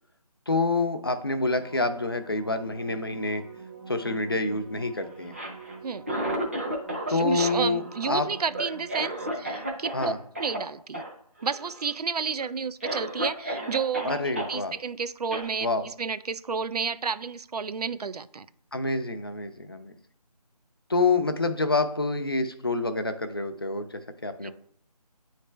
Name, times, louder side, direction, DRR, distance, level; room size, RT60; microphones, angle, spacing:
voice 1, 0.5-3.4 3.9-5.3 7.1-8.3 9.9-10.2 14.0-14.7 15.6-15.9 18.7-19.9 20.9-24.5, left 3 dB, 35° left, 8 dB, 0.4 m, -27 dB
sound 1, 1.5-10.1 15.4-15.5, right 4 dB, 50° right, 1.4 m, -46 dB
Cough, 5.2-7.1 7.4-10.1 10.4-10.6 10.9-11.1 11.4-11.9 12.4-12.5 12.8-14.5 15.3-15.5, right 1 dB, 20° right, 0.6 m, -33 dB
voice 2, 7.1-10.1 10.4-11.0 11.4-14.1 14.5-18.5 24.4-24.5, right 5 dB, 70° right, 15 dB, 0.4 m, -31 dB
8.9 x 3.3 x 3.3 m, 0.64 s
figure-of-eight pair, 170°, 21 cm